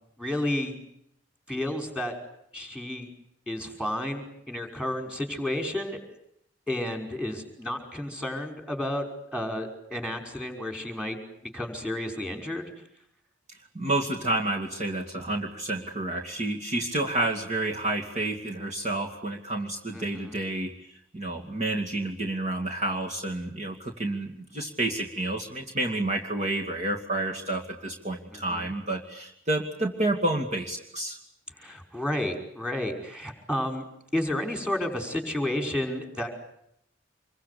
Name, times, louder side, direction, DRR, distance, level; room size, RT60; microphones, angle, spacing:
voice 1, 0.2-0.7 1.5-2.1 2.5-3.1 3.5-6.2 6.7-11.2 11.5-12.7 19.9-20.3 28.3-28.7 31.6-33.9 34.1-36.4, left 1 dB, 5° right, 4 dB, 5.5 m, -31 dB
voice 2, 13.7-20.7 21.1-31.2, right 2 dB, 35° right, 1 dB, 2.5 m, -29 dB
26.5 x 23.5 x 8.5 m, 0.75 s
head